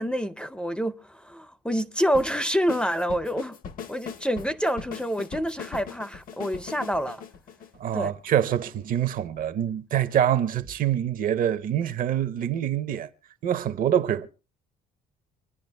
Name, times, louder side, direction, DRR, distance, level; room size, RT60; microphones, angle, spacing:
voice 1, 0.0-3.6 3.9-7.2 7.9-8.1, equal, 5° left, 0.5 m, -27 dB
sound 1, 2.1-8.4, left 7 dB, 55° left, 0.8 m, -40 dB
voice 2, 7.8-13.1 13.4-14.3, right 10 dB, 55° right, 0.7 m, -25 dB
26.0 x 10.5 x 2.2 m
cardioid pair, 110°, 17 cm